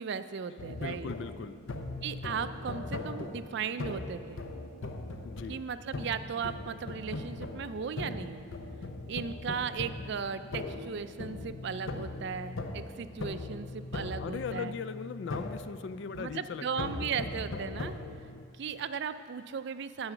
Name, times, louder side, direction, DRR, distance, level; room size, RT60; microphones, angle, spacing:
voice 1, 0.0-1.1 2.0-4.4 5.5-8.5 9.1-14.7 16.2-18.0 18.6-20.1, right 6 dB, 65° right, 12 dB, 0.4 m, -36 dB
sound 1, 0.6-18.4, left 2 dB, 85° left, 0.8 m, -40 dB
voice 2, 0.7-1.6 5.2-5.6 14.2-16.7 16.9-17.1, left 5 dB, 65° left, 13 dB, 0.4 m, -39 dB
9.6 x 7.7 x 6.0 m, 2.2 s
head